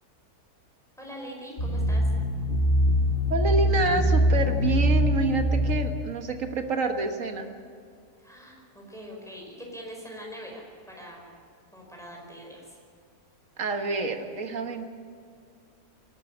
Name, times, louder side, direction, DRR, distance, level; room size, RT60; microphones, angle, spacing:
voice 1, 1.0-2.0 8.2-11.3 11.7-12.8, equal, ahead, -1 dB, 4.9 m, -43 dB
sound 1, 1.6-5.8, equal, 50° left, 2.3 m, -23 dB
voice 2, 3.3-7.5 13.6-14.8, right 3 dB, 60° right, 5 dB, 1.8 m, -28 dB
24.0 x 11.5 x 9.8 m, 2.2 s
omnidirectional pair, 1.6 m